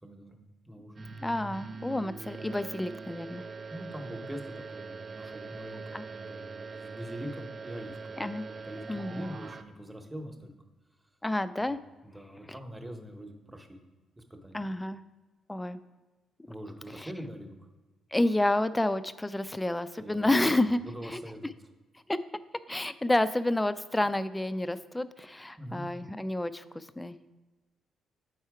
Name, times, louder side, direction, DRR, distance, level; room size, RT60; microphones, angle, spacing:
voice 1, 0.0-1.0 3.7-8.2 8.5-10.5 11.6-11.8 12.0-13.8 14.2-14.6 16.5-17.6 20.0-21.5 25.6-25.9, equal, 10° right, 4 dB, 1.0 m, -43 dB
sound 1, 1.0-9.6, right 4 dB, 40° right, 0.5 m, -42 dB
voice 2, 1.2-3.4 5.9-6.0 8.2-8.5 8.9-9.3 11.2-11.8 14.5-15.0 15.5-15.8 17.0-17.1 18.1-21.2 22.1-22.2 22.7-27.3, left 1 dB, 10° left, 14 dB, 0.4 m, -29 dB
8.1 x 4.4 x 4.8 m, 1.2 s
cardioid pair, 90°, 0 cm